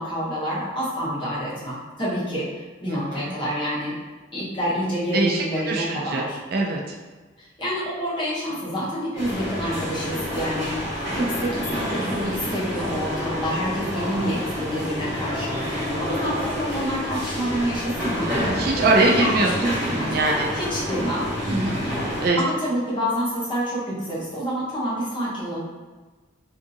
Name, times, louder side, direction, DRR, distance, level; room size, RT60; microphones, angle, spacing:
voice 1, 0.0-3.9 4.3-6.4 7.4-18.3 19.2-20.2 20.5-21.8 22.4-25.6, equal, 25° left, -9 dB, 0.9 m, -28 dB
voice 2, 2.9-3.3 5.1-6.3 6.5-6.8 12.0-12.4 18.4-20.5 21.5-22.4, right 2 dB, 50° right, -1 dB, 0.3 m, -23 dB
sound 1, 9.2-22.3, left 1 dB, 5° right, 1.2 m, -28 dB
2.6 x 2.5 x 2.7 m, 1.3 s
head